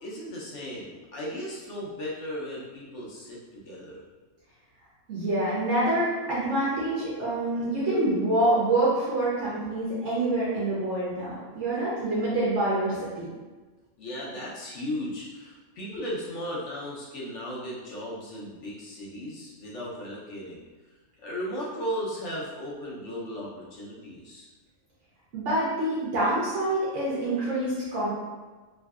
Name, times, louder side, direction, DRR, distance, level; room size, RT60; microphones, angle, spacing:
voice 1, 0.0-4.0 14.0-20.6 21.2-24.5, equal, 70° left, -5 dB, 1.1 m, -36 dB
voice 2, 5.1-13.3 25.3-28.1, right 1 dB, 70° right, -8 dB, 1.0 m, -26 dB
3.1 x 2.6 x 2.3 m, 1.3 s
omnidirectional pair, 1.3 m